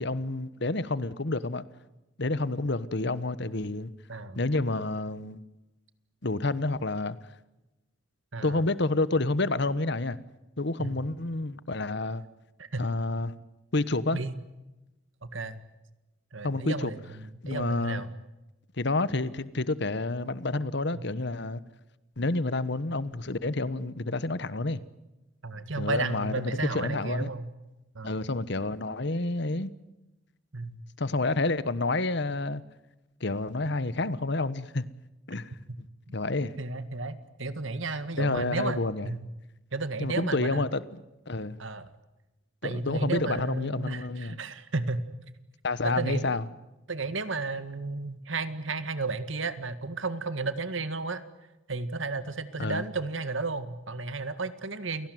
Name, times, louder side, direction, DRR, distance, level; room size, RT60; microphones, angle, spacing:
voice 1, 0.0-1.6 2.2-3.9 4.3-5.4 6.2-7.2 8.4-10.2 10.6-12.2 12.8-13.3 13.7-14.2 16.4-16.9 17.4-18.0 18.8-21.6 22.2-24.8 25.8-27.3 28.0-29.7 31.0-32.6 33.2-34.8 35.3-35.5 36.1-36.6 38.2-39.1 40.0-40.8 41.3-41.6 42.6-44.4 45.6-46.4 52.6-52.8, left 2 dB, 55° left, 1.2 m, -29 dB
voice 2, 15.2-15.6 16.3-18.1 20.9-21.0 25.4-27.5 27.9-28.1 30.5-30.8 35.7-35.8 36.6-39.3 39.7-40.6 41.6-41.9 42.6-45.0 45.8-46.4 46.9-51.2 51.7-55.1, right 3 dB, 70° right, 1.9 m, -33 dB
28.5 x 18.5 x 9.4 m
head